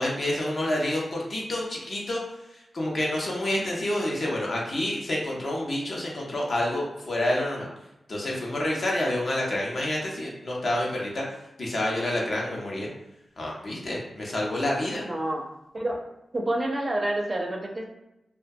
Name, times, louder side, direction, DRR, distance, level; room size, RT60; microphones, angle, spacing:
voice 1, 0.0-2.2 2.7-7.7 8.1-11.2 11.6-12.9 13.4-15.0, left 1 dB, 55° left, -3 dB, 0.6 m, -28 dB
voice 2, 15.0-15.4 15.7-16.0 16.3-17.8, right 1 dB, 35° right, 0 dB, 0.4 m, -28 dB
2.2 x 2.1 x 2.6 m, 0.90 s
wide cardioid pair, 85°, 0 cm